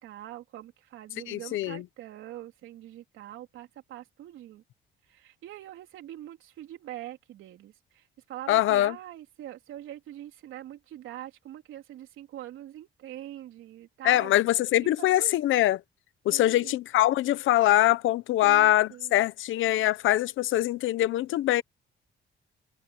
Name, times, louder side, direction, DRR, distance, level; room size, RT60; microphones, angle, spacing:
voice 1, 0.0-4.6 5.1-14.3 14.8-15.4 16.3-16.8 18.4-19.2, right 13 dB, 85° right, 3.7 m, -44 dB
voice 2, 1.3-1.8 8.5-8.9 14.0-15.8 16.3-21.6, left 14 dB, 80° left, 0.9 m, -23 dB
cardioid pair, 90°, 20 cm